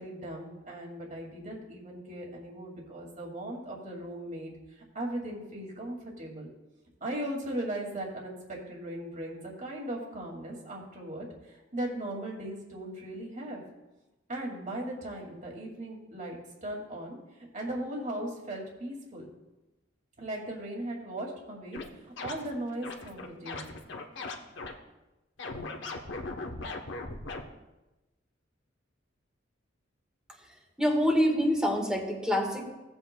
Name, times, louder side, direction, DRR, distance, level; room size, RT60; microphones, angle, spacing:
voice 1, 0.0-4.5 4.9-6.5 7.0-13.6 14.3-19.3 20.2-23.7, right 1 dB, 40° right, -1 dB, 2.2 m, -38 dB
sound 1, 21.7-21.9 22.2-22.5 22.8-24.7 25.4-27.4, left 3 dB, 65° left, 0.9 m, -38 dB
voice 2, 30.8-32.8, equal, 5° right, 1 dB, 1.5 m, -26 dB
17.0 x 8.0 x 2.2 m, 1.0 s
head